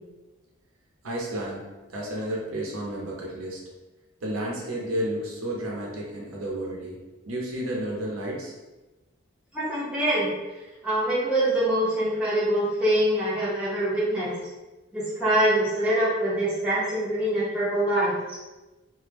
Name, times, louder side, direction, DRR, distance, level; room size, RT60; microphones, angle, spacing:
voice 1, 1.0-1.6 1.9-3.6 4.2-7.0 7.2-8.5, right 1 dB, 90° right, -3 dB, 0.7 m, -31 dB
voice 2, 9.5-10.3 10.8-14.3 14.9-18.1, right 1 dB, 5° right, -10 dB, 0.6 m, -24 dB
2.1 x 2.0 x 3.2 m, 1.1 s
head